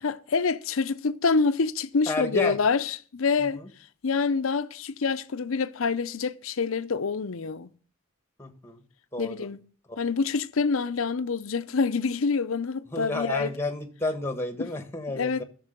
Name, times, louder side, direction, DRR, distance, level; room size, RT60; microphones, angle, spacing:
voice 1, 0.0-3.6 4.0-7.7 9.2-9.6 10.0-13.5 14.6-14.7 15.1-15.4, left 4 dB, 75° left, 0.6 m, -26 dB
voice 2, 2.1-2.6 3.4-3.7 8.4-8.8 9.1-9.5 9.9-10.0 12.9-15.4, left 2 dB, 10° left, 1.3 m, -31 dB
12.0 x 6.8 x 6.7 m
head